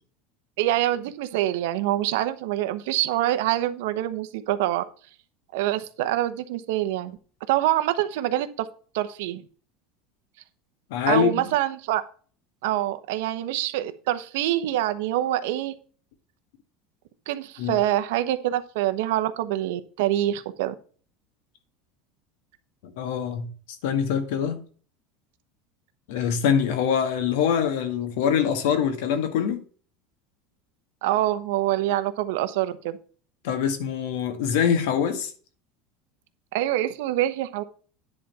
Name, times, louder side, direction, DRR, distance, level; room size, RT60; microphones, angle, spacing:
voice 1, 0.6-4.8 5.5-7.2 7.5-8.7 8.9-9.4 11.1-12.0 12.6-15.7 17.3-20.7 31.0-33.0 36.5-37.6, right 14 dB, 80° right, 1.0 m, -25 dB
voice 2, 10.9-11.4 17.6-17.8 22.8-23.5 23.8-24.6 26.1-29.6 33.4-35.3, left 8 dB, 75° left, 1.8 m, -24 dB
10.0 x 4.2 x 5.5 m
supercardioid pair, 160°, 0 cm